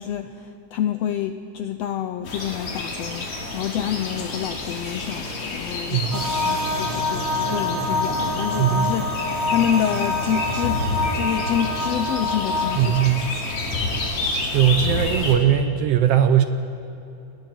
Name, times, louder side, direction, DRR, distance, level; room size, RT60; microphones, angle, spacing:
voice 1, 0.0-10.8 11.1-13.1, left 9 dB, 90° left, 8 dB, 1.4 m, -28 dB
sound 1, 2.2-15.4, left 2 dB, 65° left, 3.7 m, -29 dB
voice 2, 5.9-6.3 8.6-8.9 12.8-13.3 14.5-16.4, right 10 dB, 70° right, 8 dB, 1.5 m, -19 dB
sound 2, 6.1-12.8, left 2 dB, 35° right, 3.2 m, -26 dB
29.5 x 20.0 x 4.5 m, 2.9 s
omnidirectional pair, 3.6 m